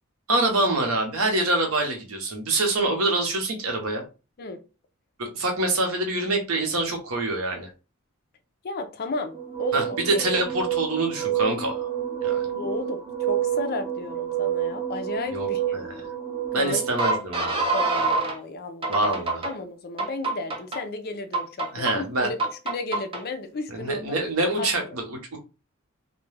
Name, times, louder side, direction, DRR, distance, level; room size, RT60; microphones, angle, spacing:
voice 1, 0.3-4.0 5.2-7.7 9.7-11.9 12.2-12.4 15.3-16.0 16.5-17.7 18.9-19.5 21.7-22.3 23.7-25.4, right 2 dB, 80° right, 3 dB, 0.8 m, -25 dB
voice 2, 8.6-10.2 12.5-15.8 16.6-16.9 17.7-19.1 19.4-22.4 22.7-24.0 24.6-25.0, left 3 dB, 50° left, 8 dB, 0.4 m, -34 dB
sound 1, 9.3-18.4 18.8-19.5 20.0-20.8 21.3-21.9 22.4-23.2, right 6 dB, 25° right, 0.5 m, -27 dB
2.3 x 2.1 x 3.2 m, 0.31 s
head